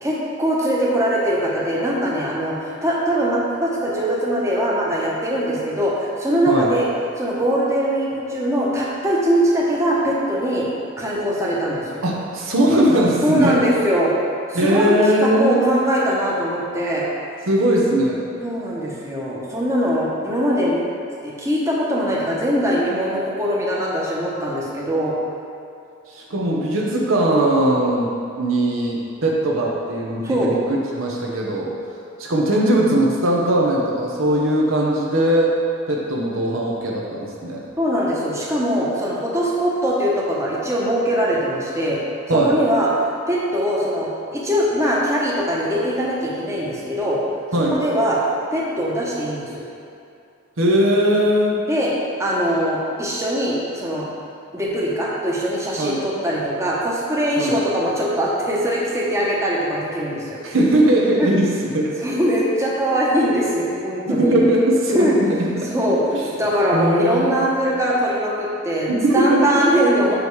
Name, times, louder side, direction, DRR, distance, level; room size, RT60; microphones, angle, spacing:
voice 1, 0.0-2.6 2.8-6.9 7.2-10.7 11.0-12.0 13.2-14.1 14.5-17.0 18.4-20.8 21.2-25.1 26.3-26.4 30.2-30.5 37.8-42.0 42.3-42.9 43.3-47.2 47.7-48.2 48.5-49.6 51.7-51.9 52.2-54.0 54.5-60.4 61.2-61.3 62.0-64.4 64.9-65.2 65.7-66.0 66.4-70.1, equal, 15° right, -5 dB, 1.0 m, -21 dB
voice 2, 12.0-13.6 14.5-15.7 17.5-18.2 26.3-30.6 31.0-31.8 32.2-35.5 35.9-37.7 42.3-42.6 47.5-47.8 50.6-51.6 55.8-56.0 57.4-57.6 60.4-61.9 64.1-65.7 66.1-66.2 66.7-67.3 68.9-69.4, right 1 dB, 75° right, -2 dB, 0.9 m, -19 dB
5.5 x 5.1 x 4.7 m, 2.6 s
head